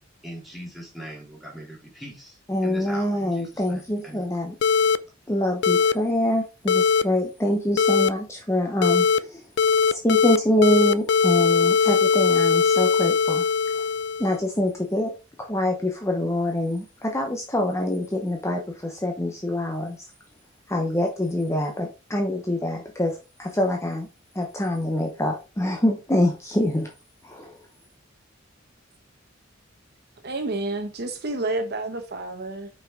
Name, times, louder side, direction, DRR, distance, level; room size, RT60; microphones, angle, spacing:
voice 1, 0.2-4.2, right 1 dB, ahead, 3.2 m, -40 dB
voice 2, 2.5-4.6 5.3-9.4 9.9-13.4 14.2-15.1 15.4-20.0 20.7-24.1 24.3-26.9 27.2-27.5, left 1 dB, 15° left, 0.9 m, -25 dB
sound 1, 4.6-5.0 5.6-5.9 6.7-7.0 7.8-8.1 8.8-9.2 9.6-10.4 10.6-14.4, left 5 dB, 65° left, 0.4 m, -20 dB
voice 3, 30.2-32.7, right 2 dB, 55° right, 1.0 m, -29 dB
5.8 x 5.6 x 3.7 m
head